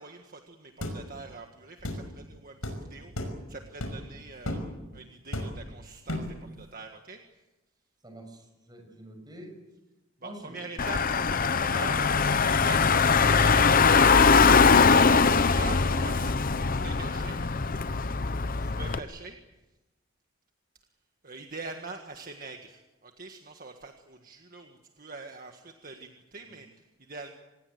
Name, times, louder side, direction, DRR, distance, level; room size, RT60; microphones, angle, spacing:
voice 1, 0.0-3.1 3.5-4.6 4.9-7.2 10.2-12.9 13.2-17.4 18.8-19.4 21.2-27.3, right 3 dB, 40° right, 4 dB, 1.7 m, -44 dB
sound 1, 0.8-1.0 1.8-2.0 2.6-2.8 3.1-3.4 3.8-4.1 4.4-4.7 5.3-5.7 6.1-6.4, left 1 dB, 80° left, 5.6 m, -33 dB
voice 2, 8.0-9.5 10.2-10.5 18.3-19.0 26.4-26.6, right 1 dB, 20° right, 4 dB, 6.4 m, -47 dB
Car / Engine, 10.8-19.0, left 5 dB, 40° left, 0.8 m, -22 dB
26.5 x 20.0 x 8.0 m, 1.0 s
head